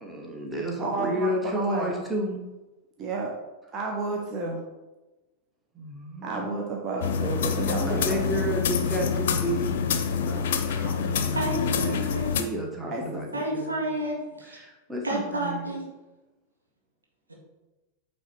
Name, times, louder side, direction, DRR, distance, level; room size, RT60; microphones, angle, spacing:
voice 1, 0.0-2.4 5.7-6.6 7.9-13.9 14.5-15.8, right 1 dB, 5° right, -1 dB, 1.2 m, -32 dB
voice 2, 0.8-1.9 3.0-3.3 3.7-4.6 6.2-8.5 12.9-13.2, right 3 dB, 30° right, -1 dB, 0.9 m, -31 dB
sound 1, 7.0-12.4, left 6 dB, 55° left, 0.6 m, -26 dB
voice 3, 11.3-12.4 13.3-14.6 15.0-15.9, equal, 80° right, -2 dB, 1.8 m, -30 dB
8.7 x 3.3 x 4.4 m, 1.1 s
figure-of-eight pair, 90°, 0 cm